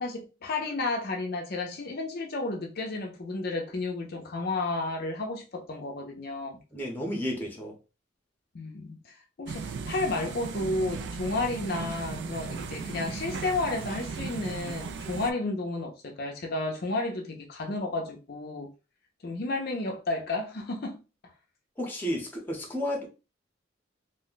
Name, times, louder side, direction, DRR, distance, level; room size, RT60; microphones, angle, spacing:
voice 1, 0.0-6.6 8.5-18.7 19.2-21.0, left 2 dB, 55° left, 0.5 m, -32 dB
voice 2, 6.7-7.7 21.8-23.1, equal, 10° left, 0.8 m, -32 dB
sound 1, 9.5-15.3, right 5 dB, 65° right, 0.3 m, -37 dB
2.5 x 2.1 x 3.8 m
head